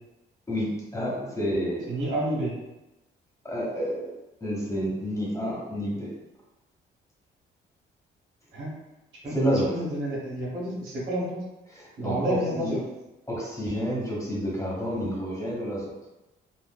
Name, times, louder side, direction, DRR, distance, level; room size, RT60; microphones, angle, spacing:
voice 1, 0.5-1.9 3.4-4.1 4.4-6.1 9.3-9.7 11.7-12.8 13.3-15.9, equal, 15° left, -4 dB, 1.1 m, -29 dB
voice 2, 1.9-2.5 8.5-8.7 9.2-9.4 9.7-11.4 12.0-12.8, right 1 dB, 80° right, -5 dB, 1.3 m, -29 dB
3.8 x 2.4 x 2.3 m, 0.99 s
cardioid pair, 90°, 20 cm